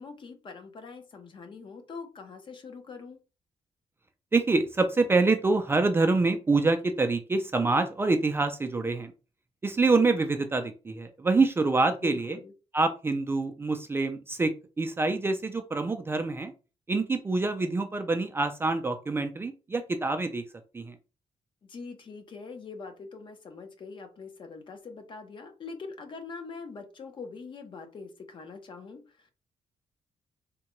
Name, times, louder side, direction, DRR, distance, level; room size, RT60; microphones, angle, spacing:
voice 1, 0.0-3.2 12.0-12.5 21.6-29.3, left 4 dB, 45° left, 6 dB, 0.7 m, -43 dB
voice 2, 4.3-9.1 9.6-12.4 12.7-16.5 16.9-20.4 20.7-20.9, right 3 dB, 20° right, 6 dB, 0.3 m, -26 dB
3.6 x 2.2 x 3.0 m, 0.32 s
wide cardioid pair, 140°, 12 cm